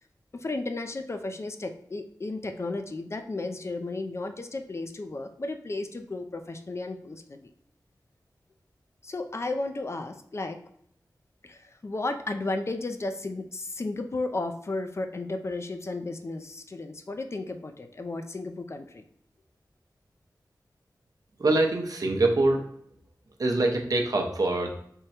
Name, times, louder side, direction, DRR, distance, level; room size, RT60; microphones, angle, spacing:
voice 1, 0.3-7.5 9.0-10.6 11.4-19.0, left 2 dB, 40° left, 6 dB, 0.4 m, -34 dB
voice 2, 21.4-22.6 23.4-24.7, right 2 dB, 55° right, 2 dB, 0.6 m, -24 dB
3.6 x 2.1 x 4.2 m, 0.69 s
wide cardioid pair, 75°, 7 cm